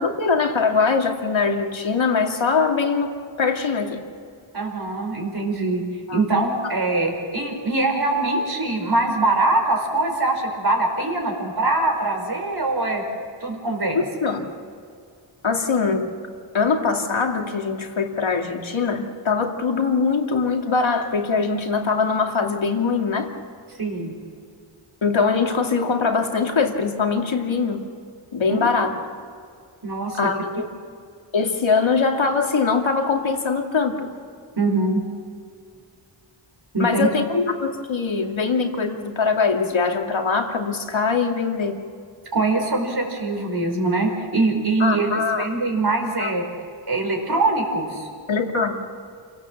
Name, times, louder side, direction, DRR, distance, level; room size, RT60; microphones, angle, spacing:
voice 1, 0.0-3.1 3.4-4.0 6.1-6.2 13.9-14.5 15.4-16.1 16.5-23.3 25.0-27.8 28.3-28.9 30.2-30.7 31.3-34.1 36.8-41.8 44.8-45.5 46.2-46.3 48.3-48.8, left 4 dB, 70° left, 2 dB, 2.5 m, -22 dB
voice 2, 4.5-5.8 6.1-13.0 13.4-14.0 23.8-24.1 28.5-28.6 29.8-30.2 34.6-35.0 36.7-37.1 42.3-46.4 46.9-48.1, right 2 dB, 50° right, 2 dB, 4.8 m, -23 dB
28.5 x 17.5 x 7.3 m, 2.2 s
wide cardioid pair, 80°, 48 cm